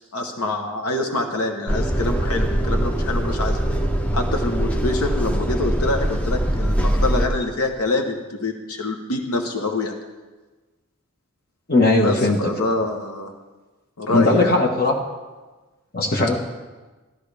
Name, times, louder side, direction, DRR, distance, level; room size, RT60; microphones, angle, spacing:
voice 1, 0.1-3.6 4.1-9.9 12.0-13.3 14.0-14.6 16.2-16.3, left 2 dB, 80° left, 3 dB, 1.0 m, -25 dB
sound 1, 1.7-7.3, right 1 dB, 5° left, 0.5 m, -22 dB
voice 2, 11.7-12.4 14.1-15.0 15.9-16.3, left 2 dB, 40° left, 1 dB, 1.4 m, -18 dB
13.0 x 12.5 x 3.4 m, 1.3 s
head